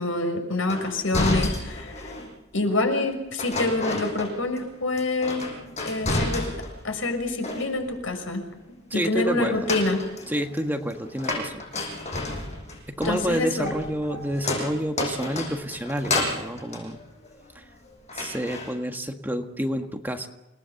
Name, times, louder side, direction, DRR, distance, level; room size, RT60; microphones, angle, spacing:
voice 1, 0.0-2.0 2.5-5.5 5.8-6.5 6.8-8.4 8.9-10.0 13.0-13.7, left 2 dB, 85° left, 5 dB, 6.4 m, -26 dB
sound 1, 0.7-2.3 3.4-4.7 5.0-6.8 7.2-8.0 9.4-17.7 18.1-18.7, left 2 dB, 35° left, 6.6 m, -31 dB
voice 2, 8.9-9.7 10.3-11.6 12.9-17.0 17.5-17.6 18.1-20.3, equal, 10° right, 4 dB, 1.7 m, -29 dB
28.5 x 19.5 x 7.1 m, 0.96 s
head